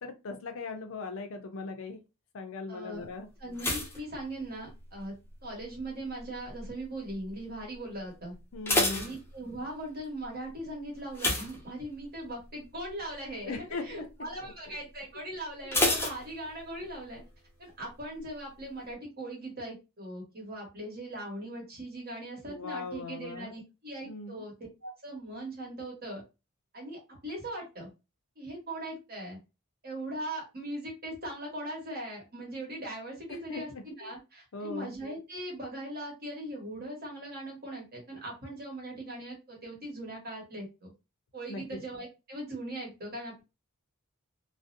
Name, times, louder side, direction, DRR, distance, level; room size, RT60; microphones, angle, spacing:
voice 1, 0.0-2.0 2.3-3.3 8.5-9.0 13.4-14.1 14.4-14.8 15.9-16.0 22.4-23.6 24.0-24.5 33.3-34.1 34.5-34.9 41.5-41.8, left 3 dB, 65° left, 6 dB, 0.5 m, -39 dB
voice 2, 2.7-3.1 3.4-5.1 5.4-8.3 8.9-17.2 17.6-24.5 24.8-26.2 26.7-27.9 28.4-29.4 29.8-40.9 41.3-43.4, right 1 dB, 45° right, -2 dB, 1.2 m, -40 dB
sound 1, 3.5-5.0 5.3-5.8 6.4-6.8 7.1-7.2 7.6-7.7 8.3-9.8 11.1-12.3 12.6-12.9 13.3-13.4 15.7-16.9 17.2-17.3, left 2 dB, 10° left, 0.5 m, -30 dB
2.5 x 2.0 x 2.5 m, 0.27 s
head